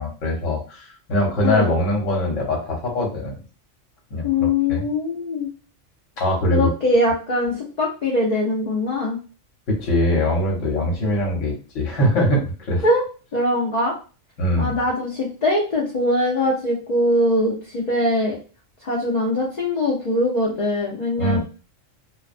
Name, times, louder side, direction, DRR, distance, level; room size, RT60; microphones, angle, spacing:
voice 1, 0.0-3.4 4.1-4.9 6.2-6.7 9.7-12.8 14.4-14.8 21.2-21.4, left 1 dB, 70° left, -1 dB, 1.2 m, -22 dB
voice 2, 4.2-5.5 6.5-9.2 12.8-13.0 13.3-13.9 14.6-18.4 18.8-21.4, left 1 dB, 50° left, -4 dB, 0.5 m, -22 dB
2.4 x 2.2 x 2.4 m, 0.35 s
omnidirectional pair, 1.4 m